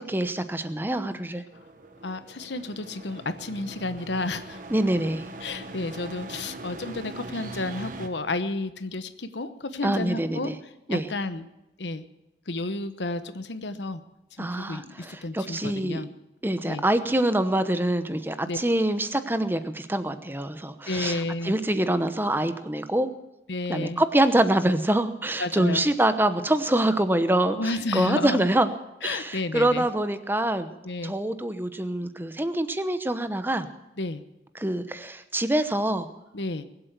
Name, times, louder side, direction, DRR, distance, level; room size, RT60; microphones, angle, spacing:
voice 1, 0.1-1.4 4.7-5.3 9.8-10.6 10.9-11.1 14.4-16.0 16.4-23.1 23.7-28.7 29.0-30.7 31.0-33.7 34.5-36.1, right 1 dB, 10° right, 10 dB, 0.9 m, -25 dB
sound 1, 1.5-8.1, right 2 dB, 50° right, 1.4 m, -41 dB
voice 2, 2.0-4.6 5.4-10.5 10.9-11.5 11.8-12.0 12.5-14.0 14.4-16.1 16.7-16.8 18.5-18.6 20.9-21.6 23.5-24.0 25.4-25.8 27.5-28.5 29.0-29.9 30.8-31.1 34.0-34.2 36.3-36.7, left 2 dB, 90° left, 11 dB, 1.0 m, -31 dB
21.0 x 8.0 x 8.1 m, 0.94 s
head